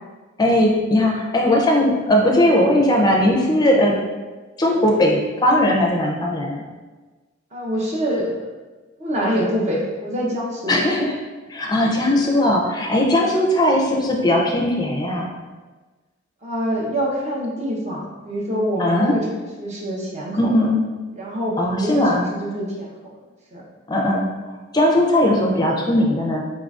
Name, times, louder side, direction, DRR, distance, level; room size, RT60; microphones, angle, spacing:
voice 1, 0.4-3.9 4.6-6.6 10.7-11.1 11.5-15.3 18.8-19.2 20.4-20.8 21.6-22.3 23.9-24.3 24.7-26.4, left 1 dB, 20° left, -1 dB, 0.5 m, -18 dB
voice 2, 7.5-8.3 9.0-11.0 11.9-12.1 13.2-13.3 16.4-20.5 21.2-22.9 23.5-23.6, equal, 35° right, -3 dB, 0.7 m, -26 dB
4.0 x 3.8 x 2.4 m, 1.3 s
head